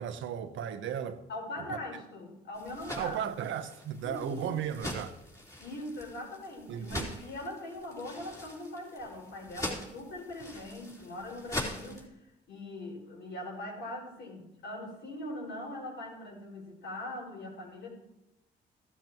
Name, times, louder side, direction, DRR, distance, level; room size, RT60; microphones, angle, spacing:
voice 1, 0.0-1.2 3.0-5.1 6.7-7.2, right 9 dB, 75° right, 1.0 m, -35 dB
voice 2, 1.3-3.2 4.0-4.6 5.6-17.9, left 1 dB, 65° left, 5.6 m, -41 dB
sound 1, 2.5-12.1, left 1 dB, 15° left, 3.5 m, -42 dB
16.0 x 12.5 x 3.1 m
cardioid pair, 90°, 20 cm